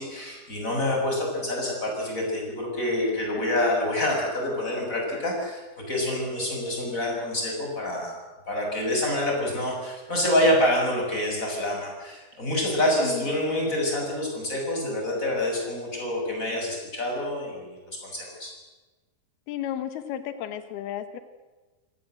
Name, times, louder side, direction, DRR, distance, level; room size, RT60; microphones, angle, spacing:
voice 1, 0.0-5.6 5.9-8.2 8.5-18.5, left 1 dB, 20° left, 0 dB, 7.3 m, -27 dB
voice 2, 19.5-21.2, left 11 dB, 85° left, 11 dB, 3.3 m, -33 dB
28.0 x 19.0 x 7.9 m, 1.2 s
omnidirectional pair, 4.4 m